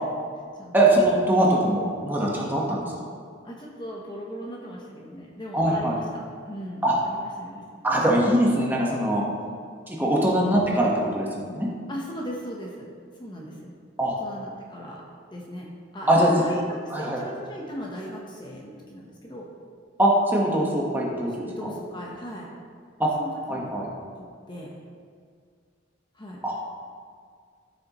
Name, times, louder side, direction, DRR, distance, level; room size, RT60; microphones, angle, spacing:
voice 1, 0.7-2.9 5.5-6.0 6.8-7.0 7.8-9.2 9.9-11.7 14.0-14.2 16.1-16.4 16.9-17.2 20.0-21.7 23.0-23.1 23.5-23.9 26.4-26.5, right 1 dB, 10° right, -4 dB, 1.3 m, -22 dB
voice 2, 3.4-6.0 6.5-7.6 9.4-9.5 11.9-12.9 13.2-13.7 14.2-15.0 15.3-15.7 15.9-19.5 21.1-22.5 23.2-23.7 24.5-24.7 26.1-26.4, equal, 25° left, -2 dB, 1.0 m, -38 dB
14.0 x 6.4 x 3.1 m, 2.1 s
head